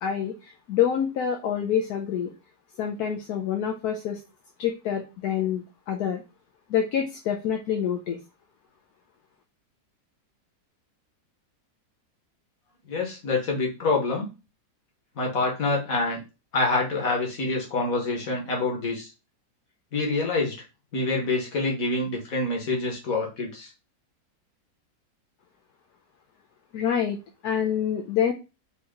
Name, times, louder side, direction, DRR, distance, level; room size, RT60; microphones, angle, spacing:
voice 1, 0.0-2.3 2.8-4.2 4.6-6.2 6.7-8.2 26.7-28.3, left 8 dB, 75° left, 3 dB, 1.2 m, -27 dB
voice 2, 12.9-14.3 15.2-16.2 16.5-19.1 19.9-20.6 20.9-23.7, left 3 dB, 60° left, 0 dB, 1.8 m, -26 dB
4.4 x 2.9 x 3.6 m, 0.28 s
omnidirectional pair, 1.7 m